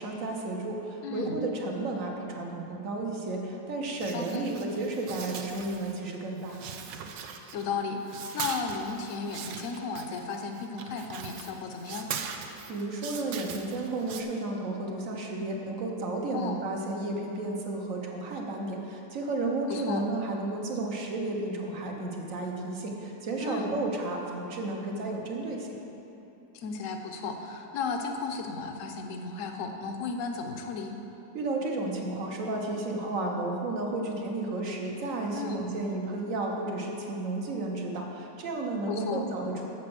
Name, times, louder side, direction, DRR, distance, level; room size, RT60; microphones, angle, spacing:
voice 1, 0.0-6.6 12.7-25.7 31.3-39.7, right 2 dB, 60° right, 0 dB, 1.3 m, -32 dB
voice 2, 1.0-1.4 4.1-4.5 7.5-12.1 16.3-16.6 19.7-20.0 23.4-23.8 26.5-30.9 35.3-35.6 38.9-39.2, left 4 dB, 60° left, 4 dB, 1.0 m, -34 dB
sound 1, 4.0-6.1 6.4-7.8 8.0-14.2, right 7 dB, 80° right, 1.2 m, -41 dB
7.4 x 7.3 x 6.2 m, 3.0 s
omnidirectional pair, 1.7 m